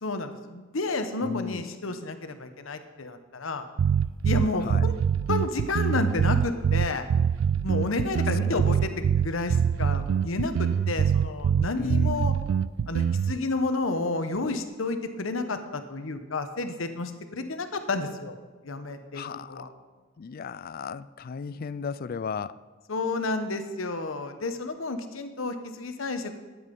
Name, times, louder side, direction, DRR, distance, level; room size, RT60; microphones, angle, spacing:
voice 1, 0.0-3.6 4.2-4.9 5.3-7.1 7.6-12.3 12.9-18.4 18.6-19.7 22.9-26.4, left 3 dB, 80° left, 9 dB, 1.0 m, -31 dB
voice 2, 1.2-1.6 4.6-4.9 8.1-8.6 8.9-9.2 11.8-12.4 19.1-19.6 20.2-22.6, left 5 dB, 45° left, 16 dB, 0.3 m, -35 dB
sound 1, 3.8-13.4, right 7 dB, 75° right, 0.3 m, -24 dB
12.0 x 8.9 x 5.3 m, 1.3 s
head